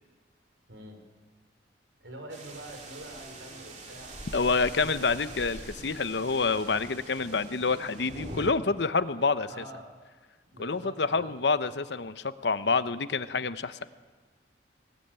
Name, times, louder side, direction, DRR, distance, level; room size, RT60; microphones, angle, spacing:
voice 1, 0.7-1.0 2.0-4.2 4.8-5.3 9.5-9.9 10.5-11.6, right 1 dB, 85° right, 5 dB, 4.5 m, -45 dB
sound 1, 2.3-8.5, right 1 dB, 40° right, 2.8 m, -43 dB
voice 2, 4.3-9.6 10.6-13.8, left 4 dB, 70° left, 13 dB, 0.9 m, -28 dB
20.5 x 18.5 x 8.9 m, 1.4 s
head